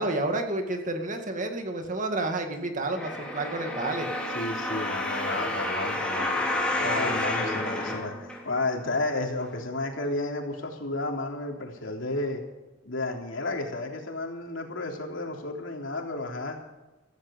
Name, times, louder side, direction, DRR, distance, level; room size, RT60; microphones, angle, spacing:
voice 1, 0.0-4.1 7.0-7.6, right 2 dB, 40° right, 5 dB, 2.1 m, -30 dB
sound 1, 2.9-8.8 9.4-9.5, left 1 dB, 5° left, 3.8 m, -30 dB
voice 2, 4.3-12.4 12.9-16.6, left 2 dB, 75° left, 1 dB, 3.4 m, -32 dB
16.5 x 15.0 x 5.3 m, 1.1 s
head